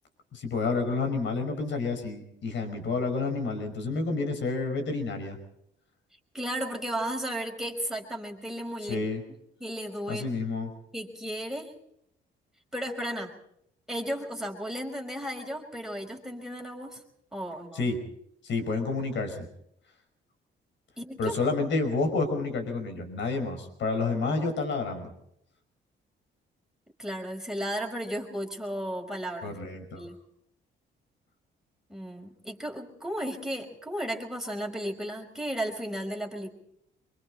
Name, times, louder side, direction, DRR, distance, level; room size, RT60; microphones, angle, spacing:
voice 1, 0.3-5.4 8.8-9.2 10.1-10.7 17.7-18.0 18.4-19.5 21.2-25.1 29.4-30.0, left 3 dB, 70° left, 7 dB, 5.4 m, -29 dB
voice 2, 6.3-9.0 9.6-10.2 10.9-11.7 12.7-13.3 13.9-17.0 17.3-17.9 21.0-21.3 27.0-29.5 30.0-30.1 31.9-36.5, equal, ahead, 1 dB, 5.2 m, -34 dB
25.5 x 23.5 x 4.3 m, 0.74 s
cardioid pair, 90°, 20 cm